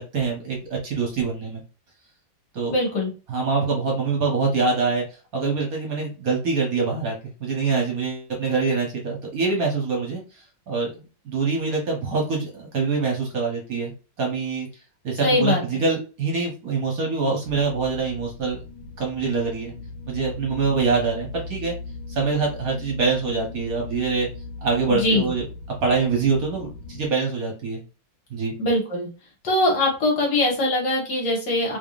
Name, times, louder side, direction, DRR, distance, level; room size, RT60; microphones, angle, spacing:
voice 1, 0.0-1.6 2.5-2.7 3.3-5.1 5.3-10.2 10.7-13.9 14.2-14.7 15.0-18.6 19.0-19.7 20.1-21.7 22.1-24.3 24.6-25.4 25.8-27.8 28.3-28.5, right 4 dB, 55° right, 0 dB, 1.3 m, -24 dB
voice 2, 2.7-3.1 15.2-15.6 24.9-25.3 28.6-29.1 29.4-31.8, left 1 dB, 65° left, -2 dB, 2.1 m, -22 dB
sound 1, 17.5-27.1, left 3 dB, 85° left, 1.5 m, -38 dB
3.6 x 3.5 x 2.4 m, 0.33 s
omnidirectional pair, 2.0 m